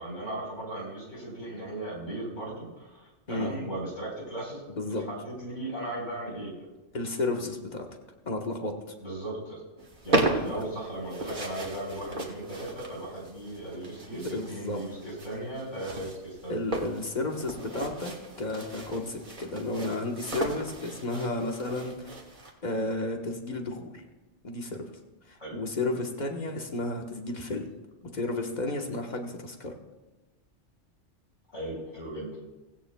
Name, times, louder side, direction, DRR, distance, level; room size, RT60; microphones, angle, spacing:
voice 1, 0.0-6.6 9.0-9.6 10.0-16.5 25.4-25.6 31.5-32.3, right 1 dB, 85° left, -2 dB, 4.8 m, -37 dB
voice 2, 4.8-5.1 6.9-7.9 8.2-8.8 10.3-10.6 14.1-14.8 16.5-22.1 22.6-24.0 24.4-24.9 25.3-27.7 28.1-29.8, left 2 dB, 40° left, 2 dB, 1.4 m, -32 dB
sound 1, 9.8-22.5, right 1 dB, 45° right, 1.5 m, -35 dB
17.0 x 16.0 x 2.3 m, 1.1 s
omnidirectional pair, 1.2 m